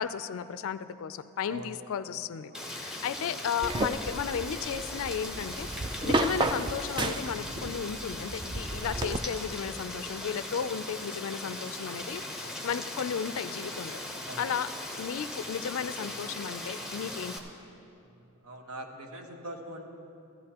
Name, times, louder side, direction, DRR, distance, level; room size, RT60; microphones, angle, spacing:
voice 1, 0.0-14.0 14.4-14.7 15.0-17.3, left 7 dB, 65° left, 13 dB, 0.4 m, -34 dB
voice 2, 1.5-2.1 2.5-2.7 10.5-10.7 12.4-12.6 14.3-14.4 18.0-19.9, right 1 dB, 70° right, 1 dB, 1.3 m, -44 dB
Rain, 2.5-17.4, left 1 dB, 5° right, 0.8 m, -39 dB
sound 1, 3.6-9.2, right 2 dB, 20° right, 0.4 m, -33 dB
sound 2, 4.3-12.5, right 1 dB, 40° right, 0.9 m, -53 dB
15.5 x 13.5 x 2.9 m, 2.7 s
head